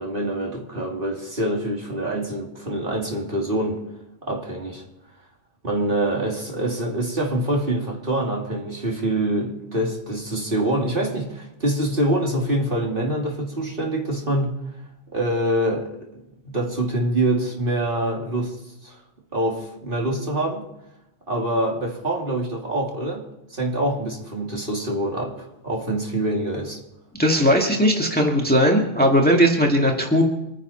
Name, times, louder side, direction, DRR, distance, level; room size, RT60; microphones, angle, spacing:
voice 1, 0.0-3.8 4.2-4.8 5.6-14.5 15.1-16.1 16.4-18.6 18.8-19.0 19.3-20.6 21.3-26.8, right 1 dB, 40° right, -1 dB, 2.9 m, -25 dB
voice 2, 27.2-30.2, equal, 5° left, 0 dB, 1.8 m, -18 dB
26.0 x 10.0 x 4.3 m, 0.88 s
omnidirectional pair, 1.4 m